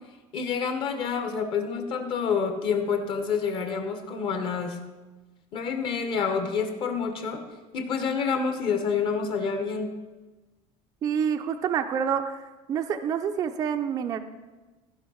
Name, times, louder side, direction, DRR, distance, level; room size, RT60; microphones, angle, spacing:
voice 1, 0.3-4.8 5.5-7.4 7.7-9.9, left 6 dB, 40° left, 6 dB, 1.1 m, -28 dB
voice 2, 11.0-12.4 12.7-14.2, right 7 dB, 25° right, 6 dB, 0.4 m, -27 dB
15.0 x 5.6 x 5.6 m, 1.2 s
cardioid pair, 175°, 13 cm